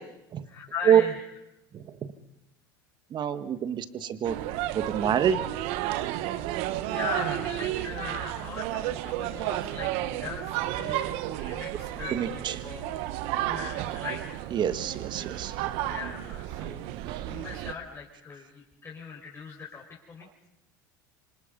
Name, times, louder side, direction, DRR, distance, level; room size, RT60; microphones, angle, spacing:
voice 1, 0.4-1.2 6.7-10.5 10.8-13.0 13.5-14.4 15.8-16.9 17.2-20.3, left 6 dB, 25° left, -2 dB, 5.1 m, -40 dB
voice 2, 3.1-4.4 4.7-5.4 12.1-12.5 14.5-15.5 17.1-17.3, right 9 dB, 40° right, 11 dB, 1.8 m, -26 dB
sound 1, 4.2-17.7, right 14 dB, 65° right, 1.4 m, -32 dB
27.5 x 25.5 x 5.5 m, 0.85 s
hypercardioid pair, 85°, 11 cm